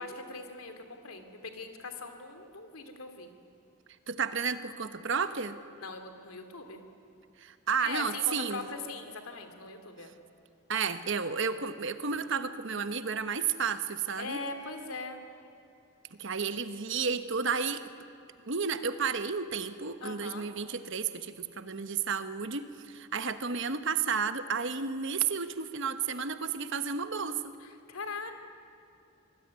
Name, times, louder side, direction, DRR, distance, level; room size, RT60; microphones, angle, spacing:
voice 1, 0.0-3.3 5.8-6.8 7.8-10.1 14.2-15.2 20.0-20.5 27.6-28.3, left 3 dB, 80° left, 6 dB, 2.8 m, -41 dB
voice 2, 4.1-5.6 7.4-8.7 10.7-14.4 16.1-17.8 18.4-27.5, right 6 dB, 60° right, 10 dB, 1.2 m, -32 dB
25.5 x 20.0 x 9.7 m, 2.8 s
head